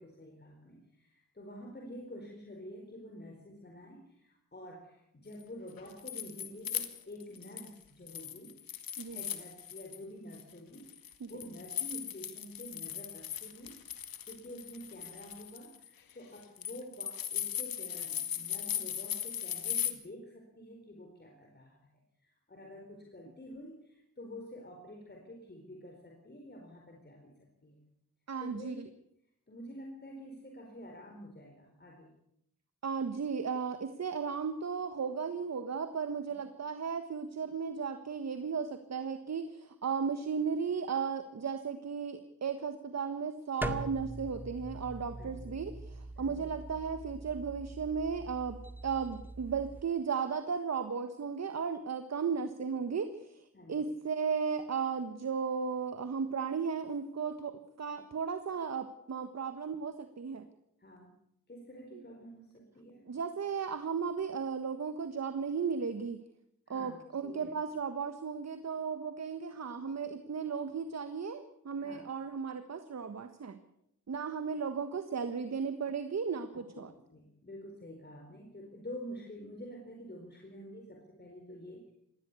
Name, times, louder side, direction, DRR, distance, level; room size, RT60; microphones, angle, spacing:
voice 1, 0.0-21.9 22.2-27.8 28.4-28.8 29.5-32.1 36.3-36.5 45.2-45.6 46.2-46.5 53.5-53.9 60.8-61.1 61.5-63.1 66.7-67.5 71.8-72.0 76.5-81.9, equal, 30° left, 2 dB, 4.4 m, -48 dB
sound 1, 5.7-7.7 8.1-10.0 10.3-19.9, left 9 dB, 80° left, 2.0 m, -38 dB
voice 2, 28.3-28.9 32.8-45.7 46.2-60.5 61.9-62.0 63.1-66.2 66.7-73.6 74.1-76.9, right 6 dB, 50° right, 10 dB, 1.4 m, -35 dB
sound 2, 43.6-49.8, right 1 dB, 5° right, 2.0 m, -42 dB
20.0 x 15.5 x 8.4 m, 0.77 s
cardioid pair, 65°, 34 cm